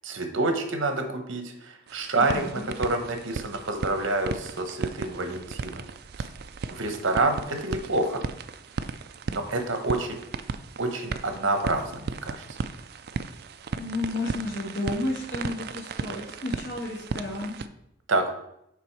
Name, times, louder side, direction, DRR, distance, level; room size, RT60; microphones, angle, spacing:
voice 1, 0.0-5.8 6.2-6.3 6.7-8.2 9.3-10.2 10.8-12.4 18.1-18.2, right 2 dB, 80° right, 6 dB, 1.1 m, -28 dB
sound 1, 1.9-17.7, right 4 dB, 50° right, 0.4 m, -36 dB
voice 2, 2.1-2.7 13.8-17.5, left 2 dB, 75° left, -4 dB, 1.6 m, -32 dB
7.0 x 4.9 x 4.6 m, 0.80 s
head